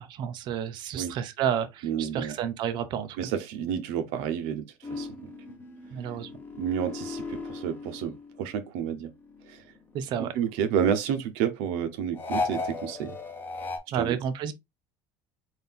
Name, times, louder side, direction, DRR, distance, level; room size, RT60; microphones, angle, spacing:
voice 1, 0.0-3.2 5.9-6.3 9.9-10.3 13.9-14.5, right 9 dB, 50° right, 0.7 m, -30 dB
voice 2, 1.8-2.4 3.2-4.7 4.9-5.3 6.6-9.1 9.5-9.6 10.3-13.2 13.9-14.2, right 8 dB, 75° right, 0.9 m, -30 dB
sound 1, 4.8-8.7 9.1-10.6 12.1-13.8, left 3 dB, 20° left, 0.9 m, -36 dB
4.0 x 2.7 x 3.5 m
cardioid pair, 130°, 10 cm